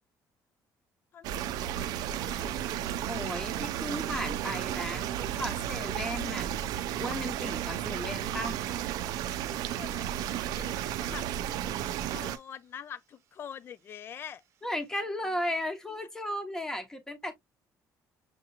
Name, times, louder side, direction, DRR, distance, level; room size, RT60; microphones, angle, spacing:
voice 1, 1.1-2.5 9.7-14.4, left 8 dB, 35° left, 0.4 m, -46 dB
sound 1, 1.2-12.4, right 11 dB, 75° right, 0.4 m, -33 dB
sound 2, 2.1-14.9, right 9 dB, 45° right, 0.8 m, -52 dB
voice 2, 3.1-6.5 7.0-8.6 14.6-17.3, left 1 dB, 10° left, 1.0 m, -35 dB
6.5 x 2.9 x 2.4 m
cardioid pair, 165°, 7 cm